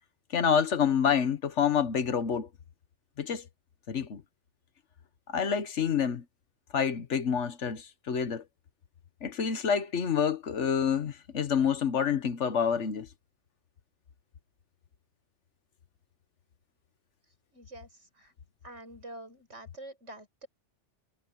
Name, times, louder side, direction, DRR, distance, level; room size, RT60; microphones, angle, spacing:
voice 1, 0.3-2.5 3.2-3.4 3.9-4.2 5.3-6.2 6.7-8.4 9.2-13.1, left 7 dB, 80° left, 1.5 m, -27 dB
voice 2, 17.5-17.9 18.2-18.3 18.6-20.5, right 1 dB, 80° right, 6.7 m, -46 dB
omnidirectional pair, 1.2 m